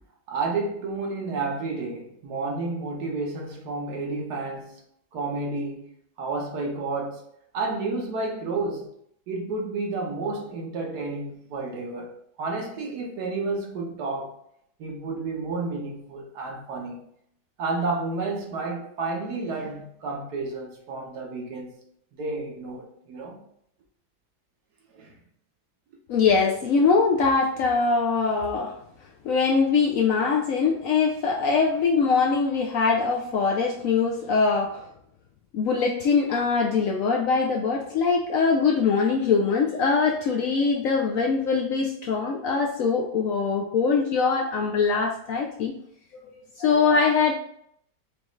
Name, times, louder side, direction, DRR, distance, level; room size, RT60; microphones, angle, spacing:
voice 1, 0.3-4.8 5.1-5.9 6.2-7.2 7.5-8.9 9.3-12.1 12.4-14.4 14.8-17.0 17.6-21.7 22.2-23.4 24.9-25.2, right 3 dB, 75° right, 1.4 m, -31 dB
voice 2, 26.1-28.8 29.2-34.8 35.5-45.7 46.6-47.3, left 5 dB, 70° left, 0.8 m, -22 dB
5.2 x 2.4 x 3.1 m
omnidirectional pair, 1.8 m